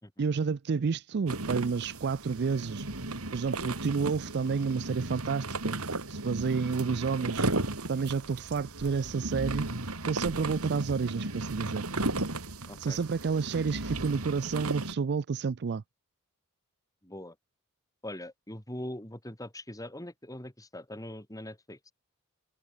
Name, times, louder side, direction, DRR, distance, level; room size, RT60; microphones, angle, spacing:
voice 1, 0.2-2.9 3.3-5.8 6.1-7.4 7.9-9.7 10.1-11.8 12.8-15.8, right 5 dB, 50° right, 0.4 m, -30 dB
sound 1, 1.3-15.0, right 2 dB, 90° right, 3.2 m, -35 dB
voice 2, 12.7-13.0 17.0-17.4 18.0-21.9, left 1 dB, 15° left, 5.8 m, -42 dB
head